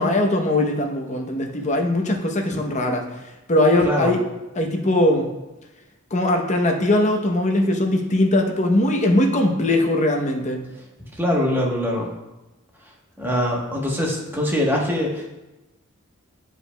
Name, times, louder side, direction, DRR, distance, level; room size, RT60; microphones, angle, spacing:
voice 1, 0.0-4.2 4.5-5.3 6.1-10.6, left 1 dB, 35° left, 3 dB, 0.8 m, -20 dB
voice 2, 11.1-12.1 13.2-15.3, left 1 dB, 10° right, -2 dB, 1.0 m, -23 dB
9.2 x 5.0 x 2.2 m, 1.0 s
head